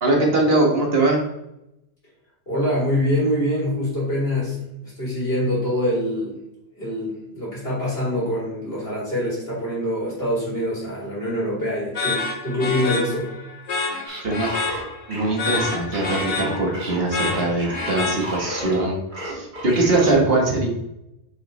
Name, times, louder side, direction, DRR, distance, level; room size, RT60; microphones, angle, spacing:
voice 1, 0.0-1.2 14.2-14.5 15.1-20.7, right 2 dB, 65° right, 0 dB, 1.7 m, -21 dB
voice 2, 2.5-6.4 6.8-13.3, left 1 dB, 65° left, -6 dB, 3.2 m, -25 dB
sound 1, 11.9-18.7, left 3 dB, 80° left, 1.2 m, -29 dB
sound 2, 14.1-18.8 19.1-20.1, right 1 dB, 45° right, 1.8 m, -33 dB
6.6 x 5.8 x 3.2 m, 0.85 s
omnidirectional pair, 1.1 m